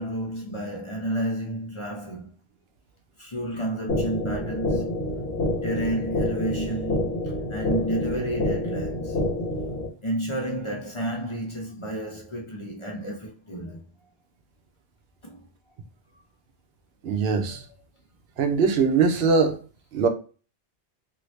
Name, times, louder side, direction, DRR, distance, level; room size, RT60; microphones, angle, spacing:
voice 1, 0.0-2.3 3.2-5.1 5.6-9.2 10.0-13.9 15.2-15.4 16.1-16.2 17.5-17.6, right 1 dB, 35° left, 0.6 m, -31 dB
sound 1, 3.9-9.9, left 1 dB, 70° left, 1.0 m, -28 dB
voice 2, 17.0-17.6 18.4-19.6 19.9-20.1, right 5 dB, 75° right, 0.8 m, -21 dB
2.8 x 2.7 x 3.1 m
omnidirectional pair, 1.0 m